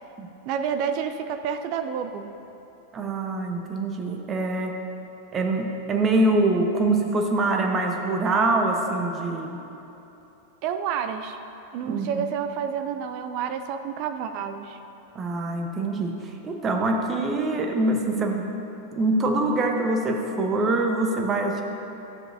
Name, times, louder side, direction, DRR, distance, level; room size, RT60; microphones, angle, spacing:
voice 1, 0.5-2.3 10.6-11.4 11.7-14.8, right 7 dB, 50° right, 8 dB, 0.4 m, -29 dB
voice 2, 2.9-4.7 5.3-9.6 11.8-12.2 15.1-16.2 16.4-18.5 18.9-21.6, right 2 dB, 25° right, 3 dB, 0.9 m, -24 dB
12.5 x 7.5 x 2.7 m, 2.9 s
figure-of-eight pair, 95°, 0 cm